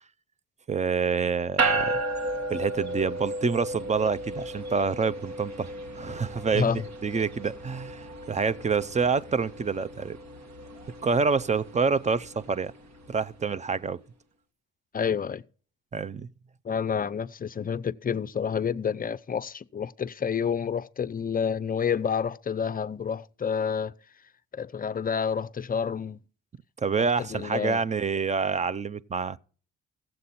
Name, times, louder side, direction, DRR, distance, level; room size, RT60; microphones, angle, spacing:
voice 1, 0.7-1.9 2.5-5.7 6.0-6.7 7.0-10.2 11.0-12.7 13.1-14.0 15.9-16.3 26.8-29.4, right 5 dB, 25° right, 0.5 m, -27 dB
sound 1, 1.6-13.2, right 2 dB, 60° right, 2.0 m, -34 dB
voice 2, 6.5-6.8 14.9-15.4 16.6-23.9 24.5-26.2 27.2-27.8, left 7 dB, 30° left, 0.5 m, -29 dB
15.5 x 7.7 x 4.1 m
cardioid pair, 90°, 30 cm